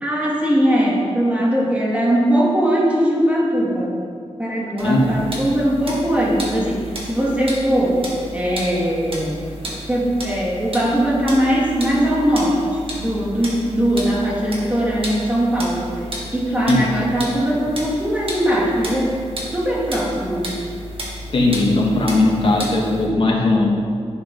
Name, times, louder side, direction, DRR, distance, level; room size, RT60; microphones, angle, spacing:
voice 1, 0.0-3.9 4.4-8.0 8.3-15.9 16.3-19.2 19.5-20.5, equal, 10° right, -5 dB, 2.3 m, -20 dB
sound 1, 4.8-23.1, right 1 dB, 55° right, 2.0 m, -33 dB
voice 2, 21.3-23.7, left 2 dB, 50° left, -2 dB, 1.9 m, -18 dB
11.0 x 7.5 x 5.4 m, 2.2 s
wide cardioid pair, 165°, 11 cm